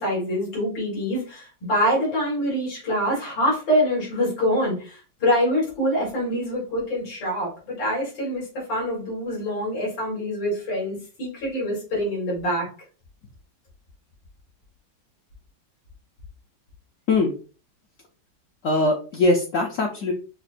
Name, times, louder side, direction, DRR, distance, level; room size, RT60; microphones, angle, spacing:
voice 1, 0.0-12.7, equal, 85° left, -4 dB, 2.7 m, -25 dB
voice 2, 18.6-20.1, left 2 dB, 70° left, 0 dB, 0.7 m, -21 dB
5.8 x 2.1 x 2.5 m, 0.36 s
omnidirectional pair, 2.0 m